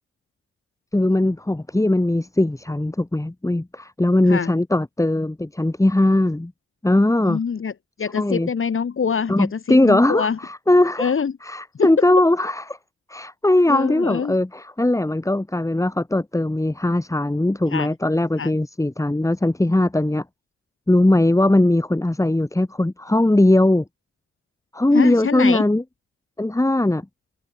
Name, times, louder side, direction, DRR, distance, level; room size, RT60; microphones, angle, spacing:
voice 1, 0.9-6.5 6.8-7.4 8.1-8.5 9.3-11.1 11.4-12.8 13.1-20.2 20.9-23.8 24.7-25.8 26.4-27.1, left 1 dB, 10° left, 2.0 m, -19 dB
voice 2, 7.2-7.7 8.0-10.4 11.0-11.3 11.8-11.9 13.7-14.3 17.7-17.9 18.4-18.5 24.9-25.6, left 6 dB, 35° left, 2.2 m, -24 dB
hypercardioid pair, 45°, 34 cm